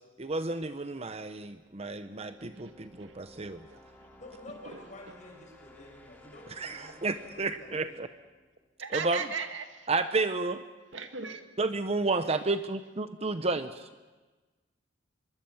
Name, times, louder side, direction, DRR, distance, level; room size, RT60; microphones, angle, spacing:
voice 1, 0.2-3.7 6.6-8.1 8.9-9.3 9.9-10.6 11.6-13.9, right 3 dB, 35° right, 10 dB, 0.8 m, -31 dB
sound 1, 1.4-9.2, left 1 dB, 10° left, 2.5 m, -57 dB
voice 2, 4.2-8.0, left 1 dB, 40° left, 1 dB, 7.1 m, -50 dB
voice 3, 8.8-9.9 10.9-11.4, right 5 dB, 80° right, 6 dB, 2.0 m, -36 dB
24.5 x 22.5 x 7.2 m, 1.2 s
head